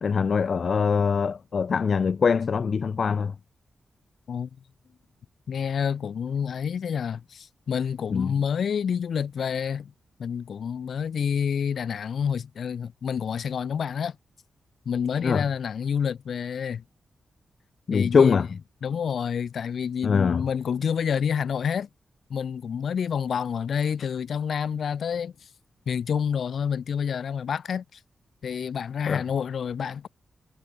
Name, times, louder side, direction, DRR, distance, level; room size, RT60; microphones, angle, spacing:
voice 1, 0.0-3.3 8.1-8.3 15.2-15.5 17.9-18.5 20.0-20.4 29.1-29.2, left 5 dB, 50° left, 0.6 m, -23 dB
voice 2, 5.5-9.9 10.2-14.1 14.8-16.8 17.9-18.5 18.8-21.9 22.3-25.5 25.9-28.0 28.4-30.1, left 7 dB, 65° left, 3.4 m, -28 dB
wide cardioid pair, 160°, 0 cm